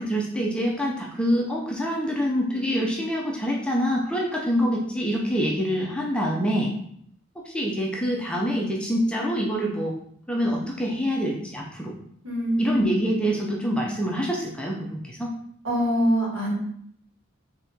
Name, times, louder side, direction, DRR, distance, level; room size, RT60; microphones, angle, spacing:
voice 1, 0.0-6.7 7.4-10.0 10.3-11.9 12.6-15.3, equal, 5° left, -1 dB, 0.5 m, -26 dB
voice 2, 12.2-12.9 15.6-16.5, equal, 75° right, -4 dB, 1.6 m, -23 dB
4.1 x 2.8 x 3.5 m, 0.67 s
head